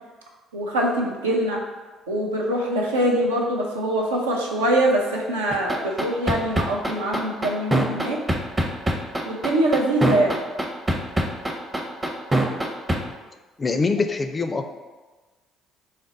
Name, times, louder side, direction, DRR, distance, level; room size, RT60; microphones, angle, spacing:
voice 1, 0.5-1.6 2.1-8.2 9.3-10.4, right 1 dB, 85° right, -1 dB, 0.5 m, -23 dB
sound 1, 5.5-13.0, right 1 dB, 20° right, 0.6 m, -22 dB
voice 2, 13.6-14.7, left 4 dB, 30° left, 6 dB, 0.4 m, -24 dB
4.0 x 2.1 x 3.8 m, 1.3 s
hypercardioid pair, 50°, 0 cm